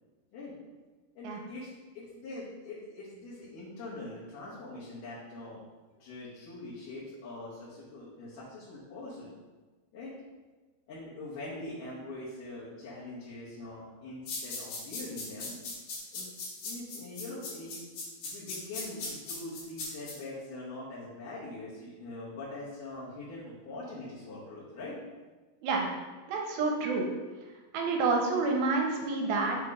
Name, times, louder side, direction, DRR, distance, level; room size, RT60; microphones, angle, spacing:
voice 1, 1.2-5.6 6.0-9.3 9.9-10.1 10.9-15.6 16.1-16.3 16.6-17.8 18.2-25.0, left 2 dB, 65° left, -8 dB, 2.5 m, -43 dB
sound 1, 14.3-20.1, left 3 dB, 85° left, 3.6 m, -38 dB
voice 2, 26.3-27.1 27.7-29.6, right 3 dB, 85° right, 1 dB, 2.5 m, -28 dB
6.8 x 3.0 x 4.9 m, 1.3 s
omnidirectional pair, 4.3 m